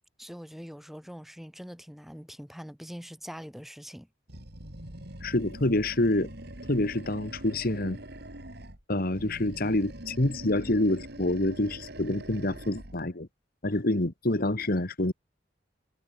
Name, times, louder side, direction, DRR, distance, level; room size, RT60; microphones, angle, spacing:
voice 1, 0.2-4.1, equal, ahead, 3.6 m, -43 dB
Animal, 4.3-8.8 9.1-13.0, right 1 dB, 60° right, 5.8 m, -43 dB
voice 2, 5.2-6.3 6.7-8.0 8.9-13.3 13.6-15.1, left 1 dB, 55° left, 2.0 m, -27 dB
head